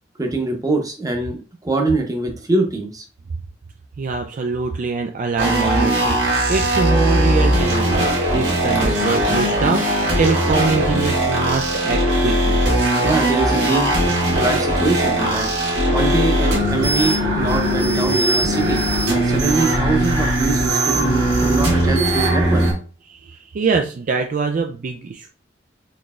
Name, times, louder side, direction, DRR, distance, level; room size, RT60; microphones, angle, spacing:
voice 1, 0.2-1.4 1.6-3.0 13.0-13.9 14.3-15.5 15.9-18.8 19.2-22.6, right 3 dB, 20° right, 3 dB, 0.8 m, -23 dB
voice 2, 4.0-12.6 21.4-21.7 23.1-25.3, right 4 dB, 45° right, 5 dB, 0.3 m, -24 dB
sound 1, 5.4-22.7, right 1 dB, 75° right, 1.7 m, -19 dB
4.1 x 3.2 x 2.4 m, 0.37 s
head